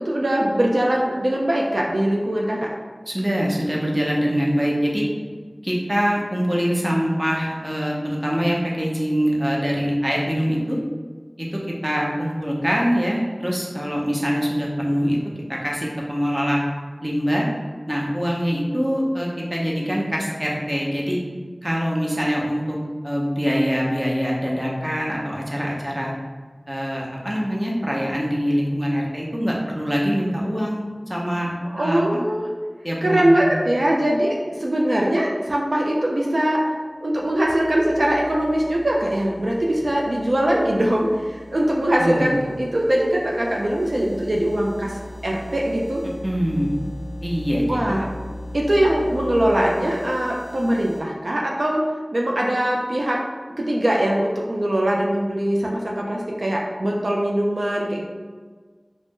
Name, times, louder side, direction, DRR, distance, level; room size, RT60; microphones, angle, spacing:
voice 1, 0.0-2.7 31.7-32.4 33.0-36.7 37.0-46.0 47.7-48.1 48.5-53.2 53.6-58.0, right 1 dB, 75° right, -2 dB, 0.3 m, -22 dB
voice 2, 3.1-5.1 5.6-10.8 11.4-15.2 15.5-16.6 17.0-17.5 17.9-21.2 21.6-22.8 23.0-26.1 26.7-32.0 32.8-33.6 42.0-42.4 46.2-46.7 47.2-47.8, equal, 20° right, -3 dB, 0.6 m, -24 dB
sound 1, 37.1-51.0, left 1 dB, 50° left, 0.5 m, -39 dB
2.5 x 2.0 x 3.5 m, 1.5 s
wide cardioid pair, 40°, 0 cm